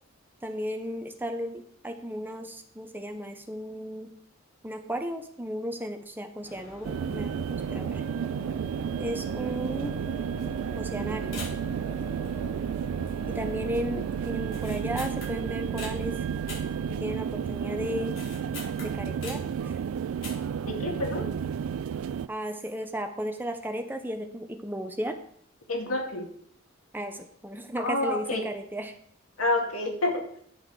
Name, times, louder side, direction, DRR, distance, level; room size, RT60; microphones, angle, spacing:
voice 1, 0.4-4.1 4.6-8.0 9.0-9.9 10.8-11.4 13.3-16.2 16.9-18.1 18.8-19.8 22.3-25.2 26.9-29.0, equal, 10° right, 5 dB, 0.8 m, -35 dB
sound 1, 6.4-18.2, left 1 dB, 40° left, 1.8 m, -46 dB
sound 2, 6.8-22.3, right 7 dB, 80° right, 0.3 m, -32 dB
sound 3, 11.3-11.8 12.2-12.7 13.0-13.5 13.7-13.8 14.4-16.0 16.5-17.4 17.7-19.6 20.1-20.6 20.9-21.0, left 3 dB, 65° left, 4.9 m, -43 dB
voice 2, 20.7-21.3 25.7-26.3 27.8-28.5 29.4-30.3, left 2 dB, 85° left, 2 dB, 2.2 m, -28 dB
9.9 x 6.4 x 4.8 m, 0.64 s
head